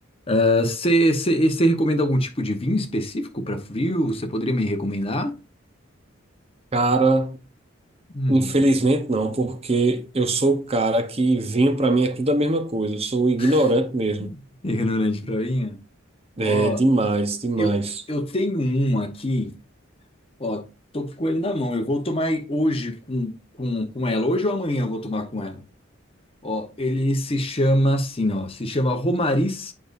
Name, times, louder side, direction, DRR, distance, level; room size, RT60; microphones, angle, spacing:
voice 1, 0.3-5.3 8.1-8.5 13.4-13.6 14.2-14.3 14.6-15.7 16.4-16.8 17.6-17.7 18.1-19.5 20.4-20.6 20.9-23.3 23.6-25.6 26.4-29.7, equal, 30° left, 1.0 m, -23 dB
voice 2, 6.7-7.4 8.3-14.3 16.4-18.0, right 2 dB, 30° right, 0.8 m, -21 dB
8.7 x 5.3 x 2.6 m
head